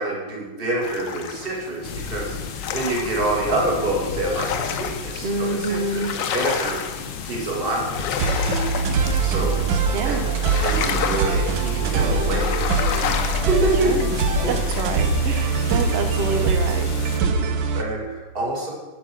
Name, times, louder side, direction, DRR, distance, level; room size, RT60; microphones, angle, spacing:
voice 1, 0.0-2.3 2.7-6.1 6.3-6.8 7.2-8.5 9.2-9.6 10.0-10.2 10.6-12.6 13.3-13.9 17.4-17.5 17.7-18.7, right 2 dB, 30° right, -2 dB, 2.1 m, -26 dB
sound 1, 0.8-14.8, left 8 dB, 70° left, 1.4 m, -31 dB
sound 2, 1.8-17.2, left 6 dB, 85° left, 1.7 m, -33 dB
voice 2, 5.2-6.1 9.9-10.2 13.8-14.1 14.5-16.9, right 3 dB, 50° right, 7 dB, 0.7 m, -27 dB
sound 3, 8.2-17.8, right 4 dB, 75° right, 1.5 m, -22 dB
10.5 x 5.3 x 5.9 m, 1.2 s
omnidirectional pair, 2.2 m